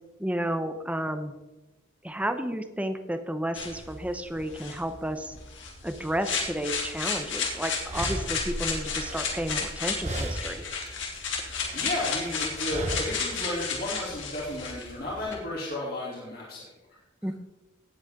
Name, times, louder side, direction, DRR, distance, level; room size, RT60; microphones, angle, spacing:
voice 1, 0.2-1.3 2.0-5.3 5.8-10.6 17.2-17.3, right 1 dB, 5° right, 8 dB, 0.8 m, -32 dB
sound 1, 3.5-15.3, left 5 dB, 65° left, 2.9 m, -33 dB
sound 2, 7.3-7.4 7.9-9.8 10.0-10.7 11.0-12.0 12.7-13.3, right 1 dB, 35° right, 1.0 m, -35 dB
voice 2, 11.7-17.3, left 1 dB, 45° left, -5 dB, 3.1 m, -33 dB
18.0 x 8.1 x 3.7 m, 1.1 s
head